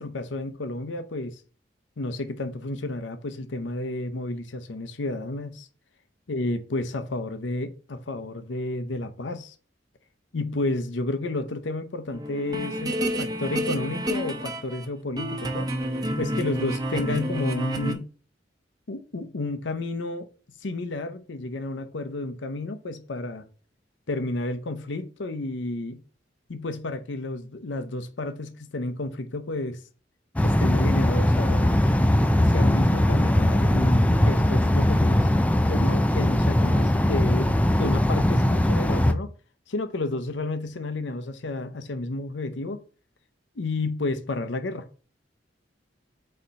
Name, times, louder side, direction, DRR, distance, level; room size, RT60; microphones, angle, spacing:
voice 1, 0.0-1.4 2.0-5.7 6.3-9.5 10.3-15.7 16.2-18.1 18.9-20.3 20.6-23.5 24.1-26.0 26.5-29.8 30.4-31.8 32.4-35.3 35.7-37.5 37.8-39.3 39.7-42.8 43.6-44.9, left 2 dB, 75° left, 0.7 m, -31 dB
sound 1, 12.1-14.9 15.2-17.9, equal, 20° right, 0.9 m, -29 dB
sound 2, 30.4-39.1, left 1 dB, 10° left, 0.4 m, -20 dB
4.3 x 4.3 x 5.2 m
head